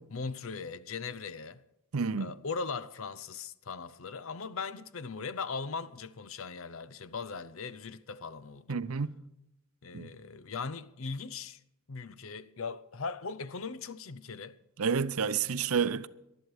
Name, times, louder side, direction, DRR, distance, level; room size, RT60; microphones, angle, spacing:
voice 1, 0.1-1.6 2.2-8.9 9.8-11.6 11.9-14.6, left 4 dB, 70° left, 0.7 m, -39 dB
voice 2, 1.9-2.3 8.7-9.1 9.9-10.1 14.8-16.1, right 6 dB, 85° right, 0.6 m, -29 dB
19.5 x 12.0 x 4.8 m
head